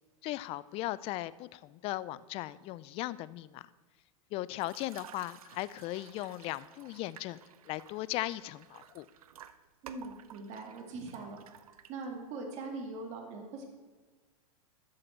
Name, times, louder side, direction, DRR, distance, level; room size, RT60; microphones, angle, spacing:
voice 1, 0.2-3.7 4.3-7.4 7.7-9.1, left 16 dB, 35° left, 18 dB, 0.4 m, -37 dB
sound 1, 4.6-12.3, right 9 dB, 80° right, 0.7 m, -54 dB
voice 2, 9.8-13.6, right 3 dB, 40° right, 1 dB, 2.3 m, -42 dB
12.0 x 7.8 x 4.4 m, 1.4 s
hypercardioid pair, 125°, 18 cm